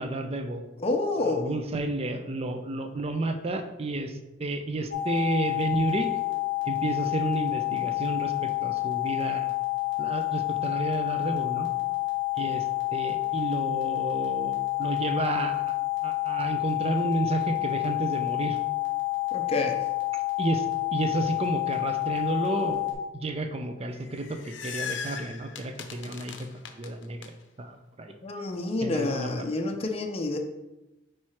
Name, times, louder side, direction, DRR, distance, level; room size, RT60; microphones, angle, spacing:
voice 1, 0.0-0.6 1.3-6.1 6.6-9.5 10.0-11.7 12.4-12.7 12.9-15.7 16.0-18.6 20.4-22.9 23.2-26.5 26.8-28.1 28.8-29.3, right 2 dB, 35° right, 6 dB, 0.5 m, -31 dB
voice 2, 0.8-1.6 19.3-19.8 28.2-30.4, left 2 dB, 35° left, 3 dB, 0.5 m, -28 dB
sound 1, 4.9-22.9, left 23 dB, 80° right, 1.5 m, -29 dB
sound 2, 24.0-27.3, left 7 dB, 75° left, 0.6 m, -38 dB
4.7 x 4.6 x 4.3 m, 1.0 s
head